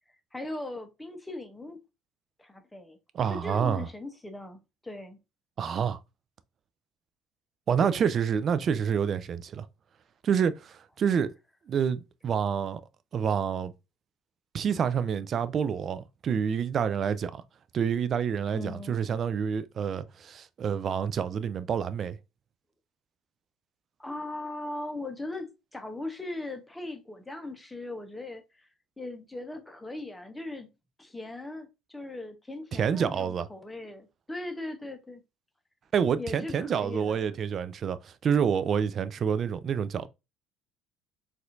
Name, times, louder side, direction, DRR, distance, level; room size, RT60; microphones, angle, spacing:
voice 1, 0.3-1.8 2.4-3.0 3.3-5.2 7.8-8.1 18.5-19.0 24.0-28.7 29.0-30.7 31.0-35.2 36.2-37.3, left 2 dB, 10° left, 0.9 m, -39 dB
voice 2, 3.1-3.9 5.6-6.0 7.7-9.7 10.2-11.3 11.7-12.8 13.1-13.7 14.5-17.4 17.7-22.2 32.7-33.5 35.9-40.1, right 7 dB, 45° right, 0.4 m, -28 dB
4.1 x 2.6 x 2.5 m
hypercardioid pair, 65°, 0 cm